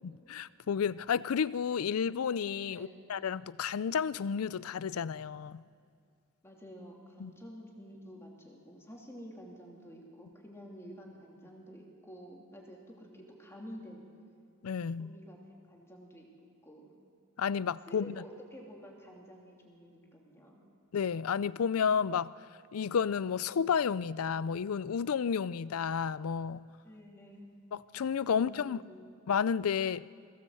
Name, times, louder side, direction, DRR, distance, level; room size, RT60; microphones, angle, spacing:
voice 1, 0.3-5.6 7.2-7.3 14.6-15.1 17.4-18.1 20.9-22.3 22.7-26.6 27.7-28.8 29.3-30.1, left 7 dB, 80° left, 0.4 m, -31 dB
voice 2, 2.7-3.0 6.4-14.1 15.0-15.4 15.7-16.3 16.6-16.9 17.9-20.7 26.8-27.5 28.3-29.1, equal, 10° left, 2.8 m, -50 dB
21.5 x 16.5 x 7.8 m
head